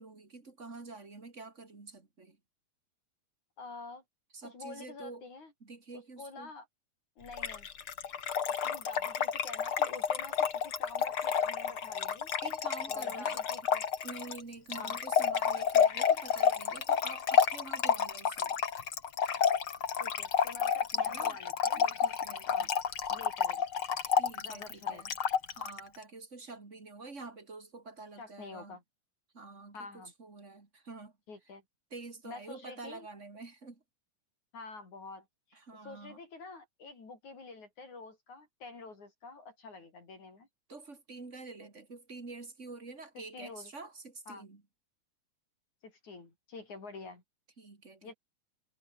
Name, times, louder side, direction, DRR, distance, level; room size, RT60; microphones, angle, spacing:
voice 1, 0.0-2.4 4.3-5.3 5.6-6.5 12.4-13.4 14.0-18.5 21.0-21.4 21.8-22.7 24.1-25.1 25.5-28.8 29.3-31.1 31.9-33.8 35.5-36.2 40.7-44.6 47.6-48.1, right 3 dB, 25° right, 2.8 m, -47 dB
voice 2, 3.6-4.0 4.4-5.5 5.9-6.7 7.2-7.7 8.5-12.3 12.9-13.8 14.7-15.0 20.0-21.9 22.5-22.7 23.1-23.6 24.4-25.0 28.2-28.8 29.7-30.1 31.3-31.6 32.2-33.1 34.5-35.6 35.8-40.5 43.2-43.7 44.3-44.5 45.8-47.2 48.0-48.1, left 3 dB, 65° left, 7.3 m, -48 dB
Trickle dribble / Fill (with liquid), 7.3-25.8, left 7 dB, 45° left, 2.5 m, -30 dB
omnidirectional pair, 3.6 m